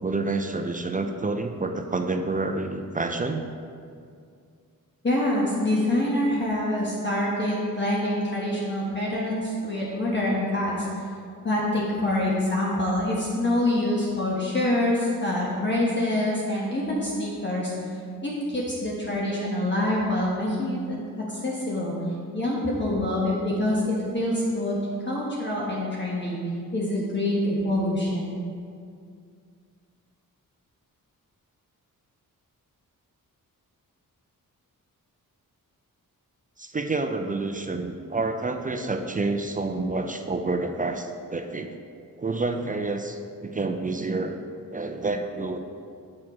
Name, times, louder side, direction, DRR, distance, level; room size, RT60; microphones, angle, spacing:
voice 1, 0.0-3.4 36.6-41.8 42.2-44.4 44.7-45.6, right 3 dB, 25° right, 5 dB, 0.4 m, -28 dB
voice 2, 5.0-11.1 11.4-17.7 18.2-21.0 21.3-21.9 22.3-24.8 25.0-26.4 26.7-28.3, left 1 dB, 30° left, -5 dB, 1.2 m, -26 dB
7.5 x 4.3 x 4.8 m, 2.3 s
cardioid pair, 75°, 35 cm